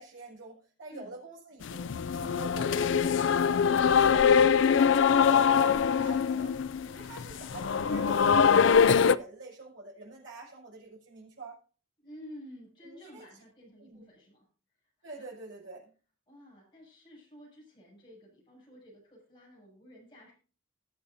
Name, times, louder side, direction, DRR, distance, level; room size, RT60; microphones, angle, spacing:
voice 1, 0.0-6.5 6.8-11.6 12.8-13.3 13.8-14.1 15.0-15.9, right 2 dB, 75° right, -4 dB, 6.4 m, -45 dB
sound 1, 1.6-9.2, left 6 dB, 70° left, 0.4 m, -23 dB
voice 2, 12.0-14.4 15.2-15.3 16.3-20.3, equal, 25° left, -4 dB, 6.8 m, -51 dB
20.5 x 7.8 x 2.7 m, 0.37 s
head